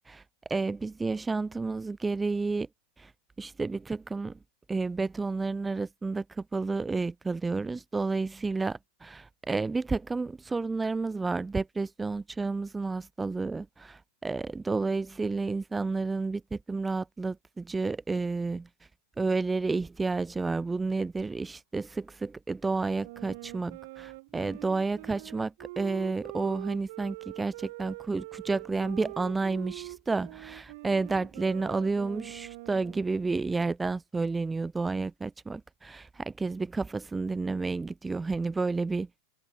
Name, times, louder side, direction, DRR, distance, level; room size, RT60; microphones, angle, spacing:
voice 1, 0.5-2.7 3.0-3.1 3.4-4.4 4.7-18.7 19.2-39.1, right 3 dB, 10° right, 0.6 m, -31 dB
Wind instrument woodwind instrument, 23.0-33.1, right 22 dB, 55° right, 6.7 m, -44 dB
figure-of-eight pair, 95°, 0 cm